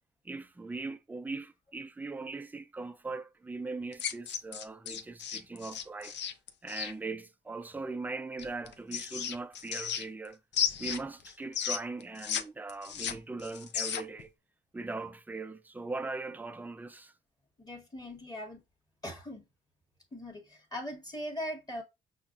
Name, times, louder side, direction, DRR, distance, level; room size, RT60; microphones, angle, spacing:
voice 1, 0.2-6.2 6.6-10.4 10.8-14.3 14.7-17.1, right 3 dB, 10° right, 0.4 m, -40 dB
sound 1, 3.9-6.9 8.4-10.3 10.5-12.4 12.7-14.2, left 8 dB, 60° left, 0.5 m, -34 dB
voice 2, 17.6-18.6 19.0-19.4 20.1-21.8, equal, 20° left, 1.2 m, -40 dB
5.7 x 2.1 x 2.4 m
cardioid pair, 90°, 20 cm